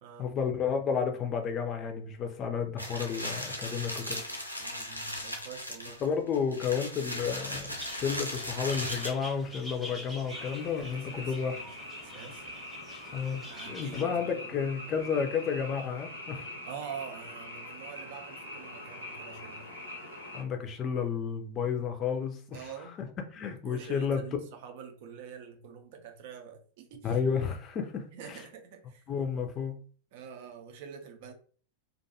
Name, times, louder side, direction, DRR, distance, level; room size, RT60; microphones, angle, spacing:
voice 1, 0.2-4.2 6.0-11.6 13.1-16.5 20.3-23.1 23.3-24.2 27.0-28.4 29.1-29.7, left 6 dB, 30° left, 0.5 m, -32 dB
sound 1, 2.8-9.1, left 1 dB, 90° left, 0.5 m, -37 dB
voice 2, 4.1-6.0 10.8-12.5 13.5-14.2 14.5-14.6 16.6-19.7 22.5-23.0 23.6-27.2 28.1-29.1 30.1-31.3, right 7 dB, 50° right, 0.5 m, -46 dB
sound 2, 7.8-14.0, left 1 dB, ahead, 0.8 m, -46 dB
Frog, 10.3-20.4, left 1 dB, 85° right, 0.8 m, -44 dB
2.5 x 2.2 x 2.7 m
figure-of-eight pair, 90°, 0 cm